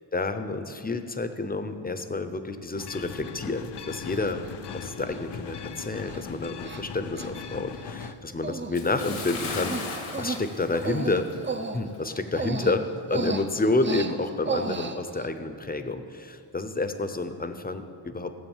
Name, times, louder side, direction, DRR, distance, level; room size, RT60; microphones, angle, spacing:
voice 1, 0.1-4.5 4.7-11.3 11.7-18.3, left 3 dB, 20° left, 9 dB, 0.8 m, -29 dB
sound 1, 2.7-8.2, left 7 dB, 60° left, 0.7 m, -39 dB
Human voice, 3.3-3.4 4.1-4.5 5.1-5.2 5.5-5.7 6.0-6.2 6.6-6.8 7.2-8.1 8.4-8.7 9.0-15.3, right 4 dB, 25° right, 0.6 m, -34 dB
Bathtub (filling or washing) / Splash splatter, 8.7-11.6 11.9-12.1 12.7-12.8, left 4 dB, 85° left, 1.9 m, -37 dB
16.5 x 8.0 x 7.3 m, 2.9 s
wide cardioid pair, 130°, 48 cm